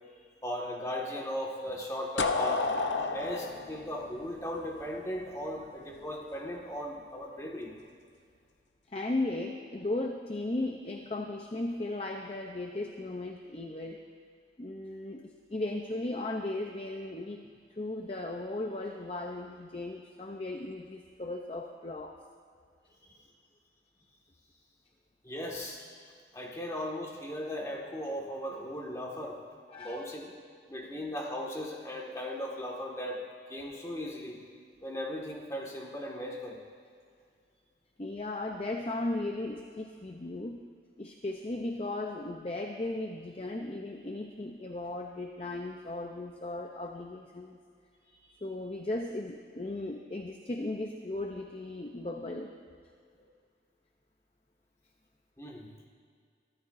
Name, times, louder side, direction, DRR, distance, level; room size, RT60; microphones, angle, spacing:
voice 1, 0.4-2.7 3.1-7.7 23.1-23.2 25.2-25.9 26.3-29.4 29.8-30.3 30.7-33.2 33.5-34.4 34.8-36.6 55.4-55.7, equal, 15° left, -1 dB, 1.7 m, -37 dB
sound 1, 2.2-5.0, left 3 dB, 85° left, 0.8 m, -31 dB
voice 2, 8.9-14.0 14.6-17.4 17.8-22.2 29.7-30.1 38.0-40.6 41.0-47.6 48.1-52.5, left 2 dB, 35° left, 2 dB, 0.6 m, -36 dB
23.5 x 14.0 x 2.6 m, 2.2 s
head